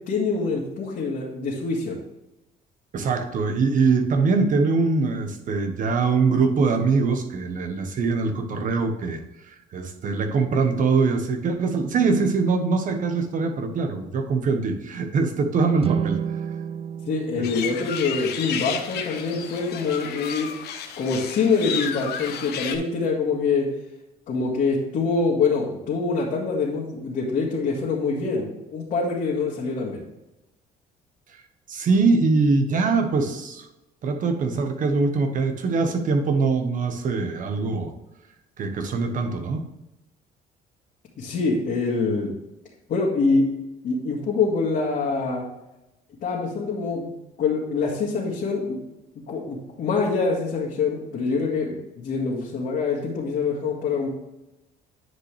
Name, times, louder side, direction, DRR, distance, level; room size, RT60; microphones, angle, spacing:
voice 1, 0.1-2.0 17.1-20.5 21.0-23.7 24.3-30.0 41.2-42.3 42.9-43.5 43.8-45.4 46.2-47.1 47.4-48.8 49.3-54.1, left 4 dB, 60° left, -5 dB, 2.1 m, -25 dB
voice 2, 2.9-9.2 9.5-16.2 31.3-31.4 31.7-33.7 34.0-37.9 38.6-39.6, right 4 dB, 50° right, 5 dB, 1.3 m, -23 dB
sound 1, 15.8-19.1, right 8 dB, 35° right, 0.4 m, -31 dB
sound 2, 17.4-22.8, left 8 dB, 75° left, 1.1 m, -32 dB
9.6 x 5.3 x 3.4 m, 0.95 s
cardioid pair, 110°, 17 cm